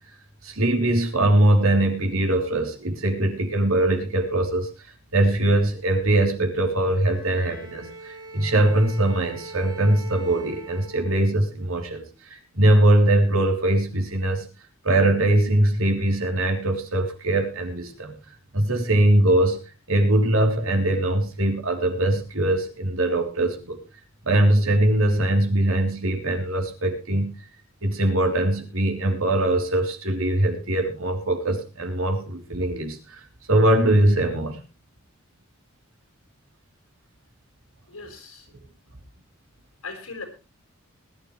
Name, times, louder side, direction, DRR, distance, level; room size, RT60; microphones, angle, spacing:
voice 1, 0.4-4.7 5.1-14.5 14.8-18.1 18.5-19.6 19.9-23.8 24.2-27.4 27.8-34.6, right 1 dB, 75° right, 4 dB, 3.4 m, -21 dB
Bowed string instrument, 7.1-11.5, right 2 dB, 20° right, 6.7 m, -41 dB
voice 2, 37.9-38.5 39.8-40.2, left 4 dB, 85° left, 4 dB, 5.4 m, -38 dB
21.0 x 11.5 x 3.2 m, 0.31 s
head